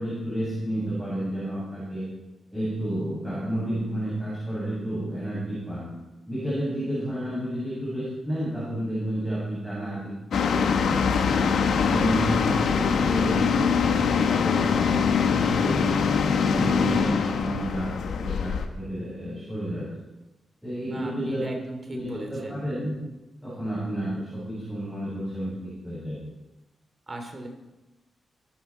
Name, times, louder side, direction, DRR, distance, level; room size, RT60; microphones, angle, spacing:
voice 1, 0.0-2.1 2.5-5.9 6.3-11.4 11.8-15.9 16.4-19.9 20.6-21.5 21.9-22.9 23.4-26.2, right 1 dB, ahead, -10 dB, 7.7 m, -31 dB
sound 1, 10.3-18.7, left 6 dB, 80° left, 1.5 m, -23 dB
voice 2, 16.6-17.2 20.9-22.6 27.1-27.5, right 2 dB, 25° right, 3 dB, 3.1 m, -37 dB
24.0 x 12.5 x 4.5 m, 1.0 s
wide cardioid pair, 150°, 0 cm